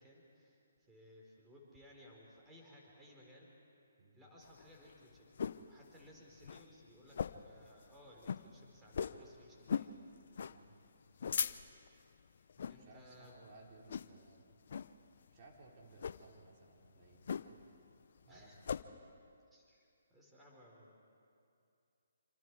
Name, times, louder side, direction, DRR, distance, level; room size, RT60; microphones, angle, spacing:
voice 1, 0.0-3.5 4.1-5.3 5.7-7.2 7.4-10.0 12.4-13.3 18.3-18.6 19.5-21.0, equal, 10° right, -3 dB, 4.3 m, -60 dB
sound 1, 4.4-5.7 6.1-6.2 6.4-6.6 7.1-7.6 7.9-8.0 8.2-8.4 8.9-9.2 9.7-9.9 10.4-10.6 11.0-11.9 12.5-12.8 13.2-13.5 13.9-14.3 14.7-14.9 15.9-16.2 17.3-17.7 18.0-18.8, left 7 dB, 60° left, 0.7 m, -39 dB
voice 2, 12.6-14.4 15.3-17.5 18.2-18.9, right 3 dB, 35° right, -2 dB, 5.1 m, -60 dB
27.0 x 26.5 x 4.8 m, 2.5 s
figure-of-eight pair, 145°, 0 cm